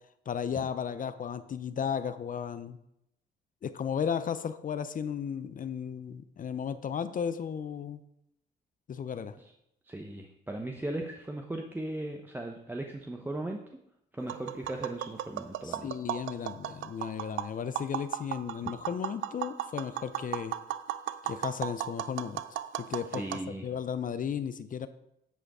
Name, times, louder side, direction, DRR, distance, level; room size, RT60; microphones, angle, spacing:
voice 1, 0.3-2.8 3.6-8.0 8.9-9.4 15.6-20.5 21.2-22.4 22.8-23.2 23.6-24.9, left 7 dB, 45° left, 12 dB, 0.5 m, -34 dB
voice 2, 9.8-13.6 14.1-15.9 23.1-23.7, right 1 dB, 10° right, 2 dB, 0.7 m, -37 dB
Tap, 14.2-23.4, right 12 dB, 75° right, 0.4 m, -36 dB
9.1 x 4.9 x 4.8 m, 0.80 s
cardioid pair, 90°, 20 cm